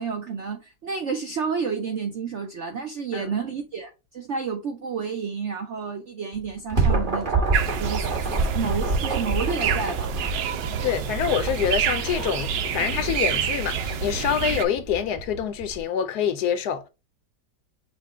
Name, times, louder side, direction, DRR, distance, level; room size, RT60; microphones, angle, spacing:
voice 1, 0.0-10.1, right 5 dB, 70° right, 0.7 m, -30 dB
sound 1, 6.3-15.8, right 3 dB, 35° right, 1.1 m, -28 dB
sound 2, 7.5-14.6, right 8 dB, 85° right, 1.3 m, -28 dB
voice 2, 10.8-16.9, left 8 dB, 70° left, 1.0 m, -26 dB
5.9 x 2.1 x 4.2 m
omnidirectional pair, 1.9 m